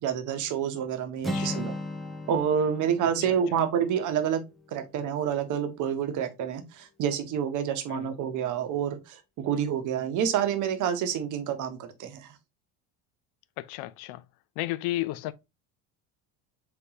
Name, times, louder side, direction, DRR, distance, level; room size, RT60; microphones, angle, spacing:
voice 1, 0.0-1.7 2.3-4.4 4.7-12.3, right 8 dB, 45° right, 0.9 m, -28 dB
Acoustic guitar, 1.2-5.2, left 1 dB, ahead, 0.4 m, -37 dB
voice 2, 1.3-1.6 3.2-3.6 7.9-8.1 13.6-14.2 14.6-15.3, left 16 dB, 60° left, 0.5 m, -33 dB
4.0 x 3.7 x 2.8 m
supercardioid pair, 125°, 41 cm